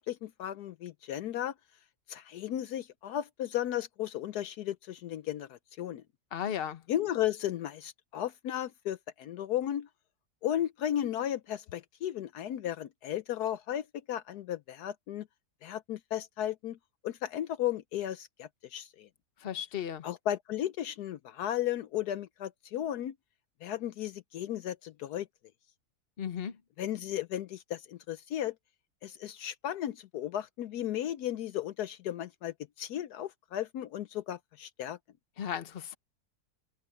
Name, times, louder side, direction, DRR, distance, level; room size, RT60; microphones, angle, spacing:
voice 1, 0.0-1.5 2.1-6.0 6.9-9.9 10.4-15.3 15.6-16.8 17.0-19.1 20.0-23.1 23.6-25.3 26.8-28.5 29.0-35.0, left 11 dB, 75° left, 1.2 m, -35 dB
voice 2, 6.3-6.8 19.4-20.0 26.2-26.6 35.4-36.0, left 9 dB, 40° left, 1.1 m, -35 dB
omnidirectional pair, 1.7 m